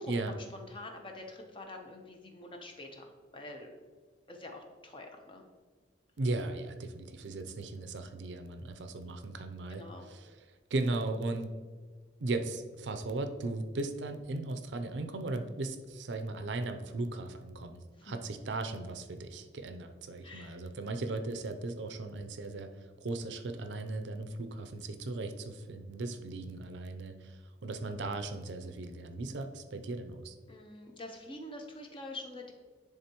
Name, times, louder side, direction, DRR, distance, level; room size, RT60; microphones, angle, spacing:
voice 1, 0.0-3.7 4.3-5.5 9.7-10.1 18.0-18.2 20.2-20.6 30.5-32.5, left 2 dB, 30° left, 2 dB, 0.8 m, -46 dB
voice 2, 6.2-10.4 10.7-11.5 12.2-22.7 23.0-30.4, right 2 dB, 80° right, 8 dB, 0.5 m, -37 dB
10.0 x 3.5 x 2.9 m, 1.5 s
head